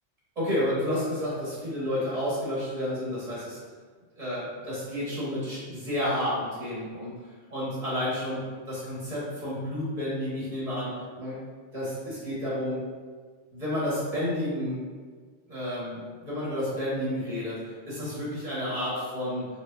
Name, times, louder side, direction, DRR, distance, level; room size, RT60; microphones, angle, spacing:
voice 1, 0.3-3.6 4.2-7.1 7.5-11.4 11.7-12.8 13.5-14.8 15.5-19.5, left 1 dB, 30° right, -9 dB, 1.6 m, -31 dB
4.7 x 2.8 x 2.7 m, 1.5 s
omnidirectional pair, 1.3 m